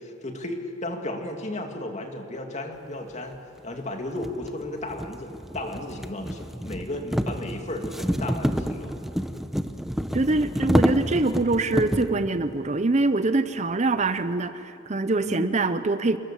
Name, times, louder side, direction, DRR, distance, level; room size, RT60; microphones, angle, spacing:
voice 1, 0.0-3.4 3.6-8.9 15.2-15.5, left 1 dB, 35° left, 4 dB, 2.4 m, -34 dB
sound 1, 3.3-3.4 4.2-12.2, equal, ahead, 0.8 m, -28 dB
voice 2, 10.1-16.2, right 2 dB, 35° right, 11 dB, 0.7 m, -24 dB
27.5 x 21.5 x 7.3 m, 2.7 s
head